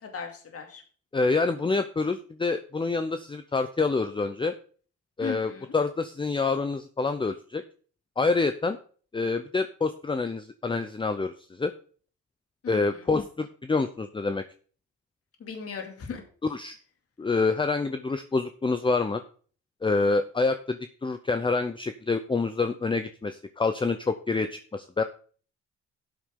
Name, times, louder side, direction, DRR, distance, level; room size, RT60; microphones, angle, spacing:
voice 1, 0.0-0.8 5.2-5.8 12.6-13.1 15.4-16.2, left 6 dB, 50° left, 4 dB, 2.6 m, -37 dB
voice 2, 1.1-4.5 5.2-7.6 8.2-8.8 9.1-11.7 12.7-14.4 16.4-16.8 17.2-19.2 19.8-25.0, left 3 dB, 15° left, 9 dB, 0.7 m, -27 dB
11.5 x 8.5 x 3.7 m, 0.42 s
cardioid pair, 90°, 30 cm